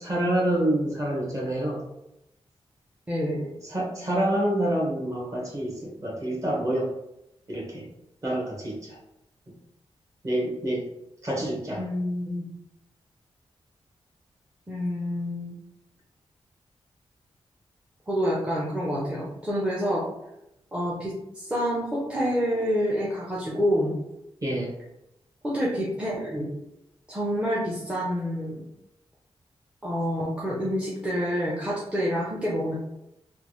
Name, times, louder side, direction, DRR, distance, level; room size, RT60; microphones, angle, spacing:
voice 1, 0.0-1.8 3.6-6.9 7.5-7.8 8.2-9.0 10.2-10.8 11.2-11.8 24.4-24.7, right 1 dB, 30° right, -3 dB, 1.2 m, -27 dB
voice 2, 3.1-3.5 11.8-12.5 14.7-15.6 18.1-20.0 20.7-24.0 25.4-26.5 27.1-28.7 29.8-32.7, equal, 10° right, -6 dB, 0.6 m, -27 dB
3.4 x 2.3 x 3.0 m, 0.86 s
wide cardioid pair, 120°, 10 cm